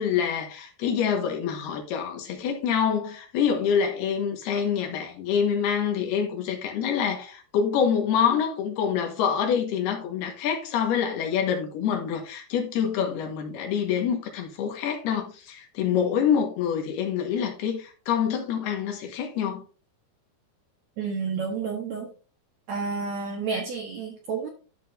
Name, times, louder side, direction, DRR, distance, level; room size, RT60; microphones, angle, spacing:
voice 1, 0.0-19.6, left 7 dB, 80° left, 3.3 m, -26 dB
voice 2, 21.0-22.1 22.7-24.5, right 5 dB, 65° right, 1.8 m, -30 dB
12.5 x 6.4 x 2.6 m
omnidirectional pair, 4.7 m